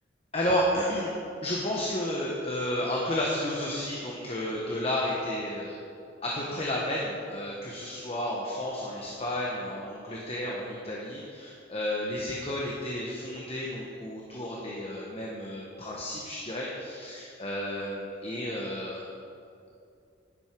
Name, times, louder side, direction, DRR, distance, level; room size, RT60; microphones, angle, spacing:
voice 1, 0.3-1.1 1.4-5.8 6.2-19.1, left 1 dB, 30° left, -3 dB, 1.2 m, -32 dB
11.0 x 11.0 x 4.6 m, 2.5 s
head